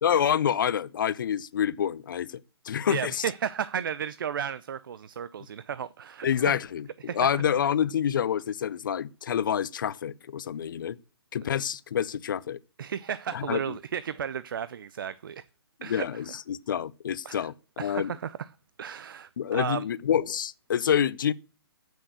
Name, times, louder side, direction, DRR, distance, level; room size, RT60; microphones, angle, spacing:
voice 1, 0.0-2.3 2.7-3.2 6.2-6.9 7.1-11.0 11.3-12.6 13.3-13.7 15.8-17.5 17.8-18.1 19.4-21.3, left 9 dB, 55° left, 0.7 m, -27 dB
voice 2, 2.9-6.5 7.1-7.4 12.8-15.4 15.8-16.4 17.2-17.5 17.8-18.5 18.8-19.8, right 8 dB, 55° right, 0.6 m, -34 dB
14.5 x 6.5 x 8.0 m
figure-of-eight pair, 140°, 13 cm